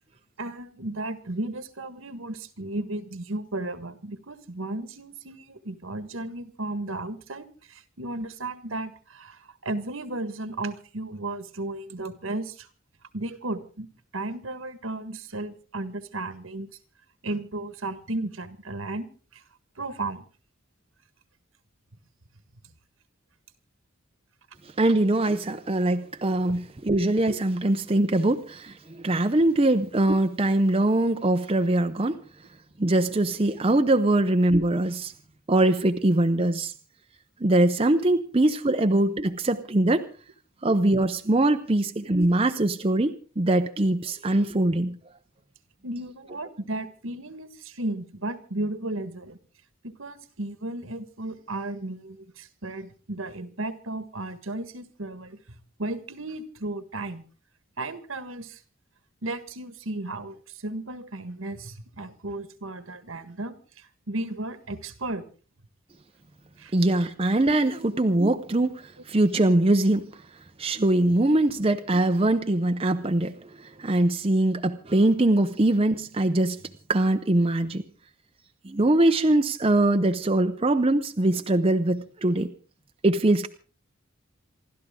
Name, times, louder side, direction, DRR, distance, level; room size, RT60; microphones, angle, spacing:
voice 1, 0.4-12.7 13.1-13.9 14.1-16.7 17.2-19.4 19.8-20.2 41.8-41.9 45.8-49.4 49.8-55.4 55.8-57.2 57.8-58.6 59.2-65.2 66.6-66.7 67.8-67.9, right 2 dB, 75° right, 1.6 m, -34 dB
voice 2, 24.8-32.2 32.8-35.1 35.5-36.7 37.4-40.1 40.6-45.0 66.7-70.2 70.6-73.5 73.8-76.6 76.9-77.8 78.6-82.5 83.0-83.5, right 1 dB, 25° right, 0.7 m, -22 dB
27.5 x 12.5 x 3.7 m
head